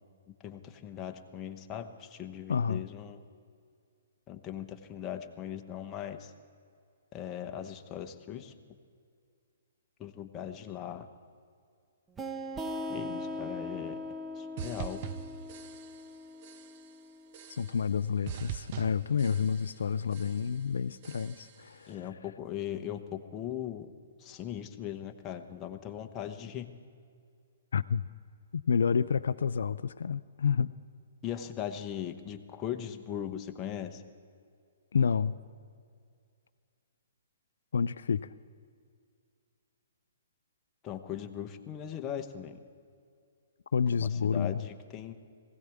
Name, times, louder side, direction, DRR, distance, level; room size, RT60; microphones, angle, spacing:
voice 1, 0.4-3.2 4.3-6.3 7.1-8.5 10.0-11.1 12.9-14.0 14.4-15.0 21.9-23.9 24.2-26.7 31.2-34.0 40.8-42.6 44.0-45.1, left 10 dB, 25° left, 5 dB, 1.0 m, -39 dB
voice 2, 2.5-2.8 17.5-22.1 27.7-28.0 28.5-30.7 34.9-35.4 37.7-38.3 43.7-44.6, left 6 dB, 75° left, 12 dB, 0.4 m, -29 dB
sound 1, 12.2-17.5, left 1 dB, 10° right, 0.8 m, -40 dB
sound 2, 14.6-16.2 16.4-16.9 17.3-18.0 18.3-19.8 20.1-20.6 21.0-21.7, right 9 dB, 40° right, 0.6 m, -43 dB
19.5 x 16.0 x 3.6 m, 2.3 s
hypercardioid pair, 135°, 0 cm